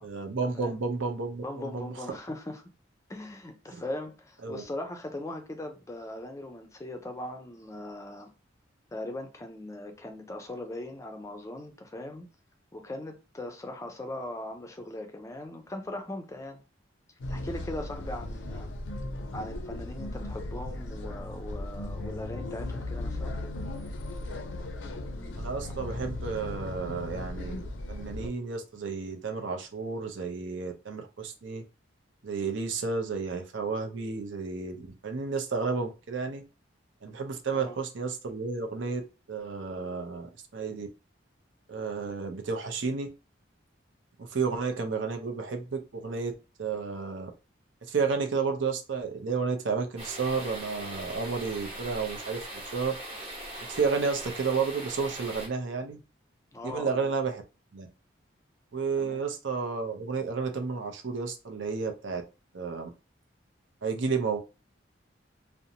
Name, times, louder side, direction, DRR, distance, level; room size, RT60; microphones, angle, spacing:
voice 1, 0.0-2.2 3.7-3.8 4.4-4.6 25.4-31.6 32.2-36.4 37.0-39.0 39.3-40.9 41.7-43.1 44.2-46.3 46.6-47.3 47.9-53.0 53.7-56.0 56.6-57.4 57.7-57.9 58.7-62.2 62.5-62.9 63.8-64.4, right 5 dB, 70° right, 0.6 m, -32 dB
voice 2, 1.4-2.6 3.1-8.3 8.9-12.3 12.7-16.6 17.3-18.7 19.3-23.4 37.5-37.8 56.5-57.1 59.0-59.2, left 1 dB, 15° left, 0.4 m, -39 dB
sound 1, 17.2-28.3, left 2 dB, 75° left, 0.4 m, -37 dB
sound 2, 50.0-55.5, right 1 dB, 30° right, 0.9 m, -41 dB
2.6 x 2.1 x 2.7 m
head